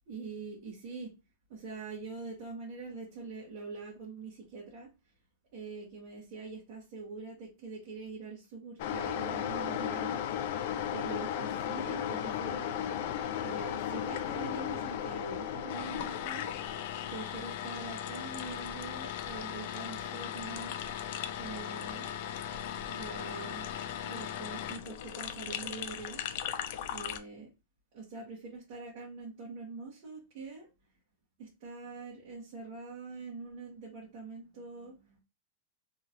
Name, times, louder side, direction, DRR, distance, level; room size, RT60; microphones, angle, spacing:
voice 1, 0.1-1.1 1.5-4.9 5.5-10.3 10.9-12.8 13.4-16.5 17.1-20.7 21.4-22.1 22.5-23.7 24.0-26.2 26.9-27.5 27.9-30.7 31.4-35.2, right 4 dB, 45° right, -5 dB, 1.2 m, -44 dB
sound 1, 8.8-27.2, left 10 dB, 50° left, 0.3 m, -36 dB
3.0 x 2.8 x 2.5 m, 0.27 s
supercardioid pair, 165°, 0 cm